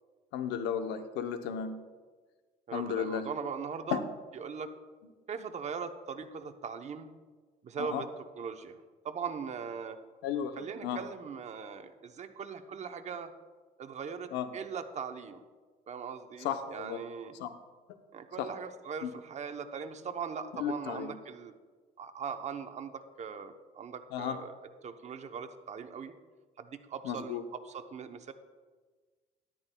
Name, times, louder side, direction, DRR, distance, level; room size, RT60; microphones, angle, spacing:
voice 1, 0.3-1.7 2.7-3.3 3.9-4.0 7.8-8.0 10.2-11.0 14.3-14.5 16.4-17.0 17.3-17.5 18.4-18.5 19.0-19.1 20.5-21.1 24.1-24.4 27.0-27.4, left 8 dB, 90° left, 8 dB, 0.8 m, -34 dB
voice 2, 2.7-4.0 4.3-4.7 5.3-7.1 7.6-8.1 8.4-10.0 10.6-13.3 13.8-15.4 15.9-17.4 18.1-21.5 22.0-24.5 24.8-26.1 26.6-28.3, right 6 dB, 40° right, 8 dB, 0.8 m, -40 dB
13.0 x 11.5 x 2.3 m, 1.4 s
cardioid pair, 110°, 17 cm